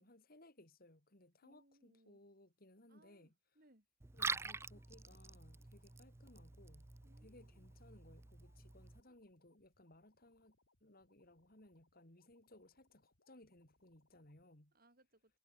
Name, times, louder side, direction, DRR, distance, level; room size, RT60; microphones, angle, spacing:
voice 1, 0.0-3.3 4.1-6.9 7.2-14.7, left 1 dB, 45° left, 3.5 m, -63 dB
voice 2, 1.4-2.2 2.9-3.9 7.0-7.7 9.0-9.2 14.7-15.4, right 1 dB, 45° right, 6.5 m, -71 dB
Liquid, 4.0-9.0, right 4 dB, 15° right, 0.4 m, -46 dB
sound 1, 4.5-14.5, left 2 dB, 75° left, 4.3 m, -79 dB
head